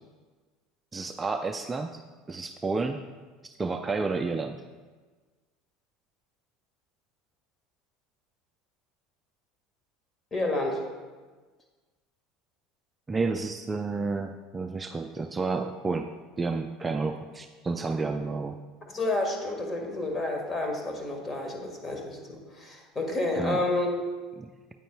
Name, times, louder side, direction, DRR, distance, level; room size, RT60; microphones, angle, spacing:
voice 1, 0.9-2.0 2.3-3.0 3.4-4.6 13.1-16.1 16.4-18.6 23.4-23.6 24.4-24.5, right 3 dB, 20° right, 6 dB, 0.4 m, -30 dB
voice 2, 10.3-10.8 18.8-23.9, left 2 dB, 25° left, 2 dB, 1.7 m, -30 dB
9.0 x 8.9 x 2.3 m, 1.4 s
hypercardioid pair, 75°, 0 cm